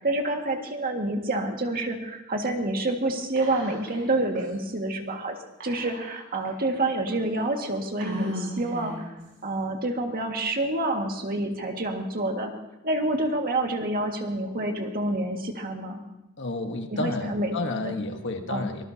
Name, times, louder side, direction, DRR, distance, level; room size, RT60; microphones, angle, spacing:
voice 1, 0.0-5.4 5.6-9.1 9.4-12.5 12.8-16.0 16.9-17.5 17.9-18.0 18.5-18.6, right 2 dB, 45° right, 2 dB, 2.0 m, -28 dB
Whispering, 3.4-4.1 4.4-4.5 5.6-6.5 7.1-7.2 8.0-9.2, right 1 dB, 60° right, 5.5 m, -35 dB
voice 2, 16.4-18.8, left 2 dB, 55° left, 5 dB, 1.4 m, -31 dB
24.5 x 19.5 x 2.9 m, 0.94 s
head